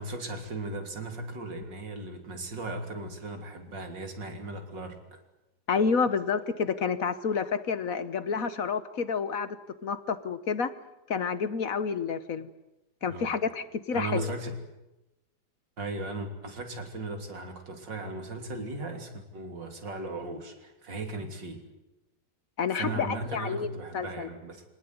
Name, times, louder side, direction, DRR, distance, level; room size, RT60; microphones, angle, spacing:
voice 1, 0.0-5.2 13.1-13.3 13.9-14.6 15.8-21.7 22.7-24.6, right 2 dB, 90° right, 6 dB, 3.8 m, -37 dB
voice 2, 5.7-9.6 9.8-10.7 11.1-12.5 13.0-14.3 22.6-24.3, left 5 dB, 55° left, 14 dB, 1.4 m, -29 dB
25.5 x 18.5 x 9.6 m, 0.97 s
omnidirectional pair, 1.9 m